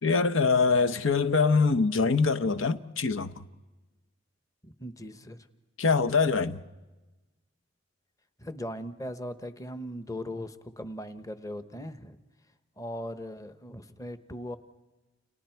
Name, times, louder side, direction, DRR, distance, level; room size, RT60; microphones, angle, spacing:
voice 1, 0.0-3.4 5.8-6.6, left 4 dB, 90° left, 0.8 m, -24 dB
voice 2, 4.6-5.4 8.4-12.2 12.8-14.6, left 1 dB, 15° left, 1.0 m, -39 dB
29.5 x 29.5 x 4.6 m
head